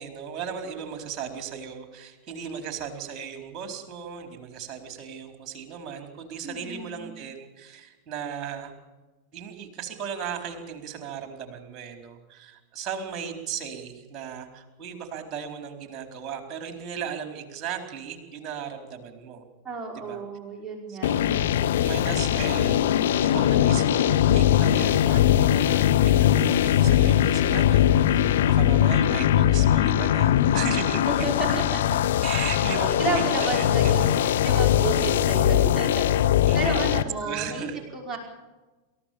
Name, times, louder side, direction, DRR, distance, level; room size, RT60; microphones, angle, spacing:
voice 1, 0.0-8.7 9.3-19.5 19.9-20.2 20.9-21.5 21.8-25.2 25.5-31.6 32.2-34.2 36.1-36.9 37.2-37.8 38.1-38.2, right 7 dB, 30° right, 6 dB, 4.4 m, -36 dB
voice 2, 6.4-7.0 19.6-21.1 31.1-31.3 31.7-31.8 33.0-36.1 36.5-37.7 37.9-38.2, right 3 dB, 10° right, -2 dB, 5.4 m, -31 dB
sound 1, 21.0-37.0, left 11 dB, 60° left, 1.1 m, -21 dB
28.0 x 15.0 x 7.2 m, 1.2 s
figure-of-eight pair, 90°, 0 cm